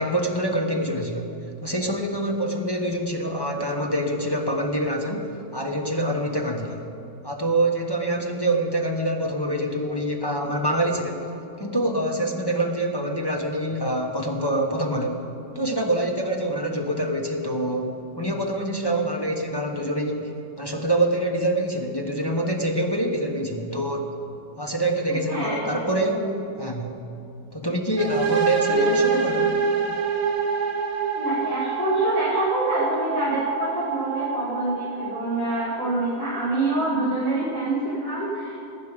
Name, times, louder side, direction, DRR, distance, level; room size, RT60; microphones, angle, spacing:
voice 1, 0.0-1.3 1.6-6.8 7.2-11.3 11.6-15.3 15.5-20.3 20.6-24.0 24.6-26.3 26.6-27.0 27.5-29.6, right 1 dB, 20° left, 0 dB, 0.6 m, -25 dB
voice 2, 25.2-25.8 28.7-28.8 31.1-38.6, right 2 dB, 55° right, -10 dB, 4.2 m, -26 dB
sound 1, 28.0-35.6, right 5 dB, 85° right, 2.0 m, -26 dB
19.0 x 10.0 x 5.2 m, 2.7 s
omnidirectional pair, 2.0 m